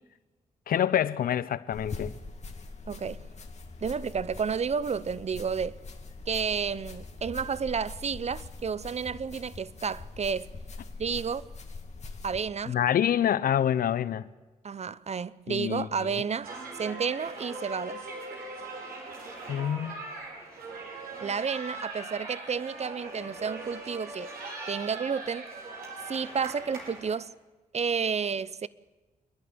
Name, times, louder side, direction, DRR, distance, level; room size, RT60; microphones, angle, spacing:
voice 1, 0.7-2.1 12.7-14.3 15.5-16.2 19.5-20.0, left 10 dB, 70° left, 0.8 m, -27 dB
sound 1, 1.7-12.4, left 3 dB, 45° left, 2.4 m, -43 dB
voice 2, 2.9-3.3 3.8-5.8 6.3-10.5 11.0-11.4 12.2-12.8 14.6-18.0 21.2-24.3 24.7-25.5 26.0-27.3 27.7-28.7, right 6 dB, 45° right, 0.8 m, -31 dB
sound 2, 16.4-27.1, right 2 dB, 75° right, 5.3 m, -40 dB
27.5 x 11.0 x 9.7 m
supercardioid pair, 45°, 15 cm